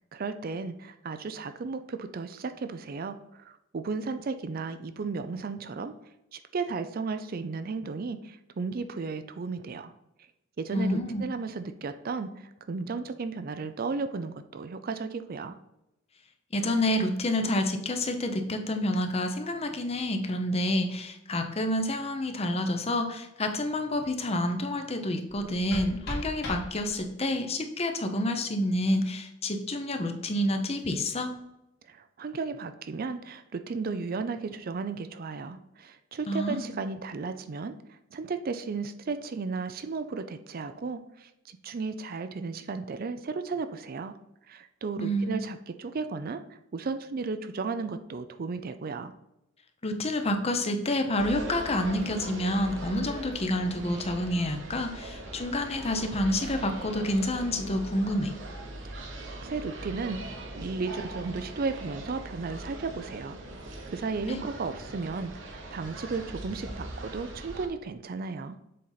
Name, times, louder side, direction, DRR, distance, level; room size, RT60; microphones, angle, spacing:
voice 1, 0.1-5.9 6.3-9.9 10.6-15.6 31.9-44.1 44.5-49.1 58.8-59.0 59.4-63.4 63.9-68.6, right 4 dB, 45° right, 10 dB, 0.4 m, -34 dB
voice 2, 10.7-11.3 16.5-31.3 36.3-36.7 45.0-45.4 49.8-58.3 64.3-64.4, left 1 dB, 30° left, 6 dB, 0.7 m, -28 dB
sound 1, 25.3-27.3, left 1 dB, 55° left, 2.2 m, -38 dB
sound 2, 51.2-67.7, right 1 dB, 65° right, 1.1 m, -41 dB
7.5 x 4.1 x 4.0 m, 0.85 s
head